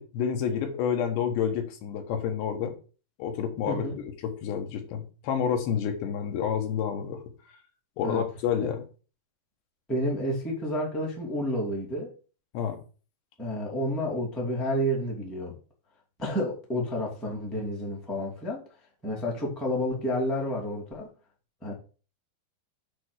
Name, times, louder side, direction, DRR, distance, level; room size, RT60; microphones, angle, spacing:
voice 1, 0.0-2.7 3.2-7.2 8.0-8.8 12.5-12.8, left 8 dB, 70° left, 5 dB, 3.2 m, -29 dB
voice 2, 3.6-4.0 8.0-8.2 8.6-8.7 9.9-12.1 13.4-15.5 16.2-18.6 19.0-21.1 21.6-21.7, equal, ahead, -4 dB, 0.8 m, -30 dB
8.4 x 3.5 x 6.4 m, 0.37 s
omnidirectional pair, 5.4 m